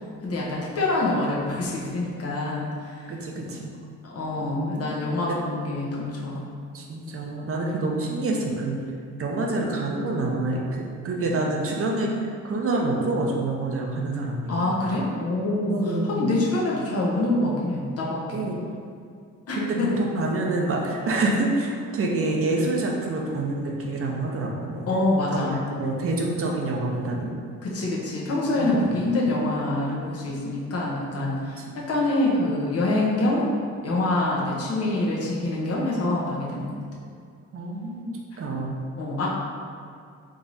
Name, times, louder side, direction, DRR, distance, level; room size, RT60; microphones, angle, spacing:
voice 1, 0.2-3.1 4.0-6.4 14.5-18.4 19.5-19.9 24.9-25.6 27.6-33.5 33.8-36.7 39.0-39.3, left 2 dB, 55° left, -5 dB, 1.2 m, -25 dB
voice 2, 3.1-3.7 4.4-4.9 5.3-5.4 6.7-8.8 9.2-12.1 12.4-14.8 15.7-16.4 18.3-18.6 19.5-24.8 25.3-27.3 28.6-29.1 31.6-31.7 37.5-38.1 38.4-38.9, right 2 dB, 45° right, -1 dB, 0.8 m, -27 dB
3.6 x 3.1 x 4.0 m, 2.3 s
cardioid pair, 90°, 30 cm